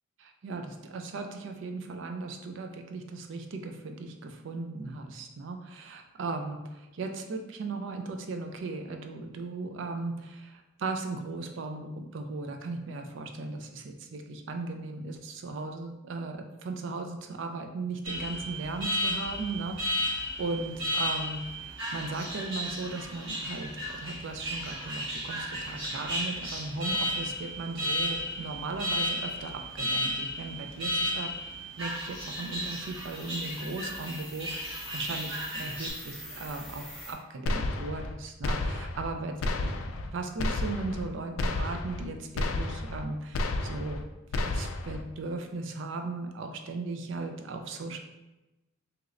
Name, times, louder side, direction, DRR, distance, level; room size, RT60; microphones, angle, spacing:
voice 1, 0.2-31.4 31.8-44.0 44.4-48.0, right 3 dB, 65° right, 5 dB, 0.4 m, -37 dB
Alarm, 18.0-35.9, left 1 dB, 85° right, 1.2 m, -34 dB
sound 1, 31.8-37.1, equal, ahead, 0.5 m, -47 dB
sound 2, 37.5-38.1 38.4-39.1 39.4-40.1 40.4-41.1 41.4-42.1 42.4-43.1 43.3-44.0 44.3-45.0, left 2 dB, 85° left, 0.3 m, -31 dB
3.1 x 2.9 x 2.5 m, 1.0 s
head